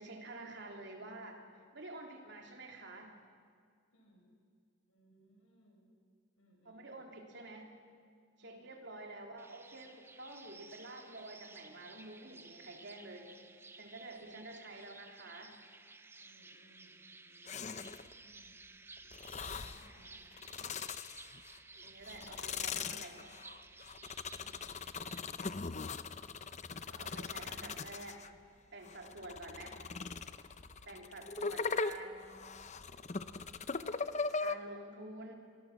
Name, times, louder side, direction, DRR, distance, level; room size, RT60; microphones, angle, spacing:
voice 1, 0.0-3.2 6.7-7.7 8.4-13.3 13.8-15.6 21.7-23.4 26.9-28.2 28.7-29.8 30.9-32.4 34.4-35.3, right 2 dB, 55° right, 2 dB, 3.5 m, -49 dB
voice 2, 3.9-4.3 4.9-5.8 6.4-7.1 8.4-8.7 14.1-14.4 16.2-18.6 19.4-20.2 24.3-24.8 30.5-31.2, equal, 80° left, 0 dB, 7.4 m, -66 dB
sound 1, 9.4-25.2, right 3 dB, 10° right, 0.7 m, -56 dB
sound 2, 17.5-18.1 19.1-19.9 20.3-21.6 22.0-28.3 28.9-34.6, left 4 dB, 35° left, 0.7 m, -40 dB
26.5 x 23.5 x 7.4 m, 2.1 s
head